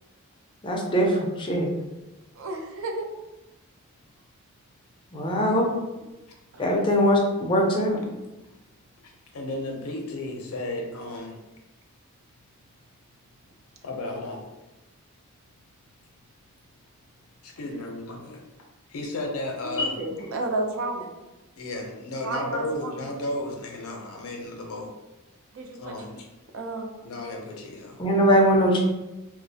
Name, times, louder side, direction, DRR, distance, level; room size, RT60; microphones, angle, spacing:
voice 1, 0.6-1.7 5.1-5.7 6.6-8.0 19.8-19.9 28.0-28.8, equal, 20° left, 0 dB, 0.3 m, -21 dB
voice 2, 2.4-3.1 6.5-6.6 19.6-21.1 22.2-22.9 25.5-25.9 26.5-27.0, right 2 dB, 60° right, 3 dB, 0.4 m, -32 dB
voice 3, 9.3-11.4 13.8-14.4 17.4-18.4 18.9-20.3 21.6-24.9 25.7-26.3 27.0-28.0, left 2 dB, 75° left, 1 dB, 0.5 m, -34 dB
2.3 x 2.0 x 2.7 m, 1.0 s
head